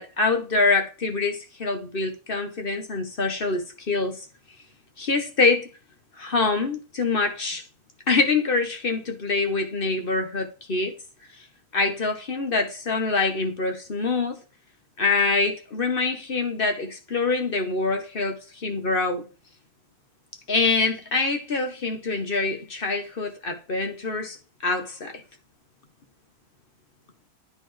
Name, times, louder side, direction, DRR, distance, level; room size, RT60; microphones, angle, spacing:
voice 1, 0.0-4.2 5.0-5.7 6.2-7.6 8.1-10.9 11.7-14.4 15.0-19.2 20.5-24.4 24.6-25.1, left 3 dB, 40° left, 1.0 m, -25 dB
10.0 x 4.2 x 3.2 m
omnidirectional pair, 1.6 m